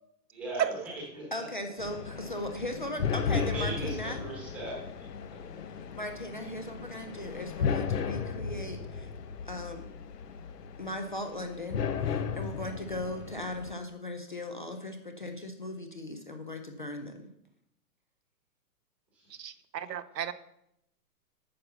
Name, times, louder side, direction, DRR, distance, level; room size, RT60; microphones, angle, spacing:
voice 1, 0.3-1.2 3.3-5.1 19.1-19.5, right 1 dB, 5° right, -5 dB, 1.2 m, -39 dB
voice 2, 1.3-4.2 5.9-9.1 9.4-9.9 10.8-17.2, left 1 dB, 30° left, 6 dB, 0.5 m, -38 dB
sound 1, 1.8-13.7, left 6 dB, 75° left, 1.1 m, -35 dB
voice 3, 19.4-20.3, right 10 dB, 90° right, 13 dB, 1.0 m, -32 dB
8.7 x 7.0 x 5.6 m, 0.79 s
hypercardioid pair, 180°, 48 cm